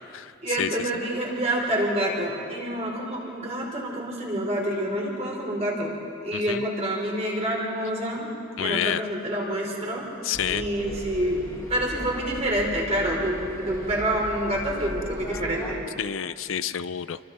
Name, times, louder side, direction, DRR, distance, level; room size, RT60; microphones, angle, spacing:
voice 1, 0.4-6.0 6.2-8.3 8.6-10.1 10.5-15.8, right 1 dB, 30° right, -2 dB, 4.6 m, -27 dB
voice 2, 8.6-9.0 10.2-10.6 16.0-17.2, left 9 dB, 70° left, 15 dB, 0.5 m, -28 dB
sound 1, 10.3-15.7, equal, 15° left, 2.6 m, -38 dB
30.0 x 24.0 x 4.3 m, 2.6 s
head